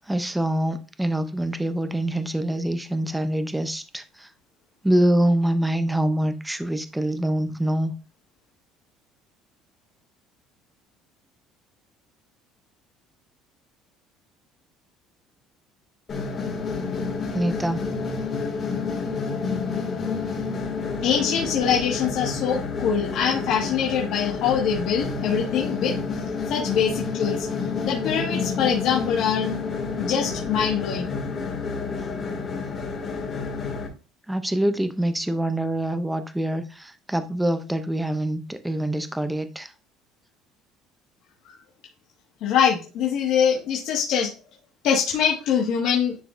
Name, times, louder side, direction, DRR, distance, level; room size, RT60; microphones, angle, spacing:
voice 1, 0.1-4.3 4.8-7.9 17.3-17.8 34.3-39.7, right 1 dB, 5° right, 0.5 m, -25 dB
sound 1, 16.1-33.9, left 4 dB, 25° left, 2.1 m, -29 dB
voice 2, 21.0-25.9 26.5-27.4 27.8-29.5 30.0-31.1 42.4-44.3 44.8-46.1, left 7 dB, 55° left, 1.6 m, -23 dB
10.0 x 5.0 x 2.5 m
cardioid pair, 175°, 0 cm